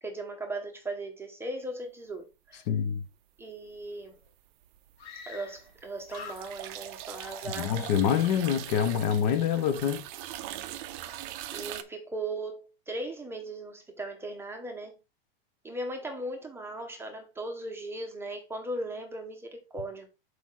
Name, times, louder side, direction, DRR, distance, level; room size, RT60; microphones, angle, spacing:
voice 1, 0.0-2.6 3.4-4.2 5.2-7.9 10.4-10.6 11.5-14.9 15.6-20.1, right 2 dB, 10° right, 0.8 m, -38 dB
voice 2, 2.7-3.0 7.6-10.0, left 8 dB, 45° left, 0.9 m, -26 dB
sound 1, 3.7-4.3 4.6-11.8, right 13 dB, 35° right, 0.5 m, -41 dB
Screaming, 3.9-4.0 4.2-4.3 5.0-5.8 6.0-6.8 7.2-8.1, left 5 dB, 90° left, 2.5 m, -46 dB
6.0 x 4.9 x 3.8 m
supercardioid pair, 145°, 30 cm